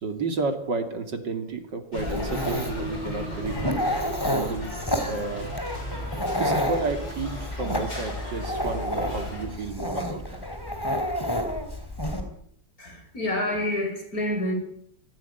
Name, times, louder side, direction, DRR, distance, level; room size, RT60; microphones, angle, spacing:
voice 1, 0.0-3.6 4.3-4.7 5.0-5.5 5.8-6.0 6.4-10.5, right 3 dB, 75° right, 3.2 m, -31 dB
sound 1, 1.9-9.5, left 1 dB, 85° left, 8.2 m, -37 dB
Dog, 2.0-12.2, equal, 10° left, 3.7 m, -30 dB
voice 2, 12.8-14.5, left 1 dB, 50° left, 6.6 m, -28 dB
25.0 x 16.5 x 9.3 m
omnidirectional pair, 1.9 m